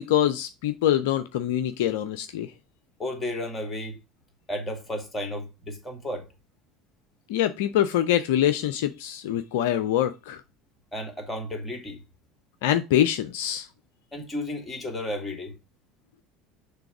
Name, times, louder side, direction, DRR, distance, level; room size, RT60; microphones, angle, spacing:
voice 1, 0.0-2.5 7.3-10.4 12.6-13.7, left 11 dB, 65° left, 0.4 m, -24 dB
voice 2, 3.0-4.0 4.5-6.3 10.9-12.0 14.1-15.6, left 1 dB, 15° left, 2.2 m, -33 dB
6.8 x 3.3 x 4.6 m
figure-of-eight pair, 70°, 0 cm